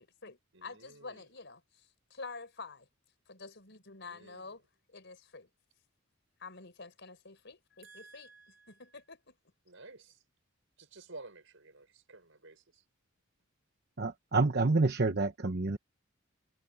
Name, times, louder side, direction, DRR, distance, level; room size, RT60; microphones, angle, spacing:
voice 1, 0.0-2.9 3.3-4.6 4.9-5.5 6.4-8.3 8.7-9.4, left 4 dB, 60° left, 5.0 m, -48 dB
voice 2, 0.5-1.3 4.0-4.5 7.8-9.0 9.6-10.2 10.8-12.8, right 3 dB, 70° right, 6.8 m, -53 dB
voice 3, 14.0-15.8, right 3 dB, 50° right, 1.0 m, -28 dB
head